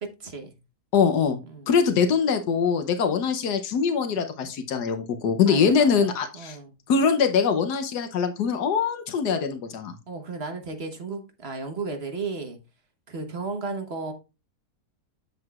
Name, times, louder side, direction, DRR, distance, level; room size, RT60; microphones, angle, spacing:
voice 1, 0.2-0.5 1.5-1.7 5.5-6.7 10.1-12.6 13.1-14.1, right 4 dB, 40° right, 5 dB, 1.4 m, -34 dB
voice 2, 0.9-1.4 1.7-6.6 6.9-9.9, left 6 dB, 85° left, 7 dB, 1.5 m, -23 dB
7.7 x 7.6 x 2.4 m, 0.27 s
omnidirectional pair, 1.7 m